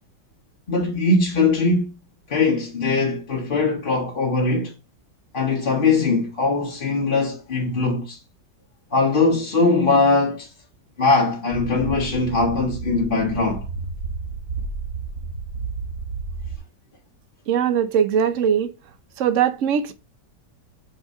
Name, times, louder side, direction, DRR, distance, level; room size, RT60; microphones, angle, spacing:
voice 1, 0.7-1.9 2.3-4.7 5.3-8.2 8.9-10.5 11.0-13.7, left 3 dB, 35° left, 1.1 m, -21 dB
sound 1, 11.5-16.6, right 4 dB, 40° right, 1.3 m, -32 dB
voice 2, 17.5-18.7 19.2-19.9, right 8 dB, 55° right, 1.0 m, -20 dB
5.8 x 4.5 x 5.3 m
omnidirectional pair, 1.9 m